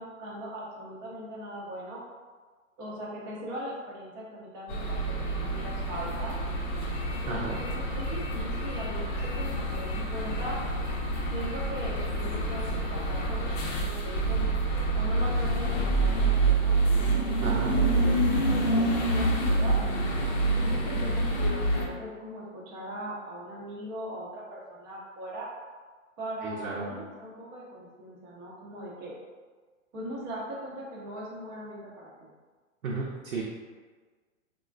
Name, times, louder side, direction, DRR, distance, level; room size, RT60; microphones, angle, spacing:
voice 1, 0.0-2.0 2.8-6.4 7.2-10.6 11.3-14.5 14.9-19.8 20.5-25.5 26.2-29.1 29.9-32.3, right 1 dB, 20° right, -5 dB, 0.4 m, -40 dB
sound 1, 4.7-21.9, right 2 dB, 35° left, 0.6 m, -27 dB
voice 2, 7.2-7.6 17.4-17.8 26.4-26.9 32.8-33.4, right 3 dB, 80° right, -5 dB, 0.7 m, -33 dB
3.5 x 2.3 x 2.4 m, 1.4 s
hypercardioid pair, 125°, 41 cm